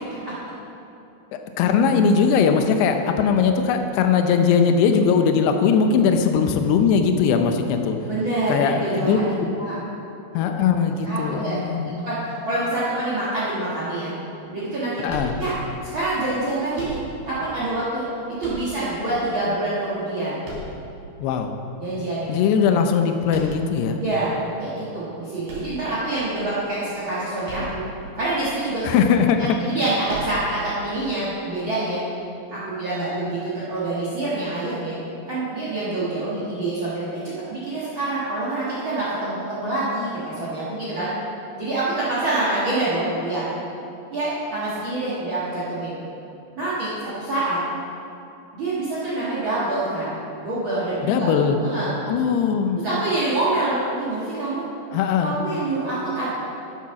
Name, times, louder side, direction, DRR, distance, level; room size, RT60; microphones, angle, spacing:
voice 1, 1.6-8.0 8.5-9.2 10.3-11.9 15.0-15.4 21.2-21.6 22.3-24.0 28.8-29.4 51.0-51.6 52.1-52.8 54.9-55.3, left 6 dB, 80° left, 6 dB, 2.4 m, -20 dB
voice 2, 8.0-9.7 11.0-11.5 12.0-14.1 14.5-15.1 15.4-15.5 15.9-17.0 17.2-20.4 21.8-22.3 24.0-24.3 24.6-27.8 28.1-28.9 29.4-32.0 32.5-35.0 35.3-37.0 37.5-41.1 41.6-43.4 44.1-45.9 46.5-47.6 48.5-50.1 50.4-51.3 51.6-51.9 52.8-54.7 55.2-56.3, right 2 dB, 75° right, -8 dB, 1.1 m, -26 dB
sound 1, 15.1-15.9 16.7-17.4 18.4-19.1 20.4-21.2 23.3-23.9 25.4-26.3 27.4-28.0 28.3-28.4 30.1-30.7, equal, 55° right, 4.4 m, -36 dB
12.5 x 7.6 x 5.7 m, 2.7 s
omnidirectional pair, 5.5 m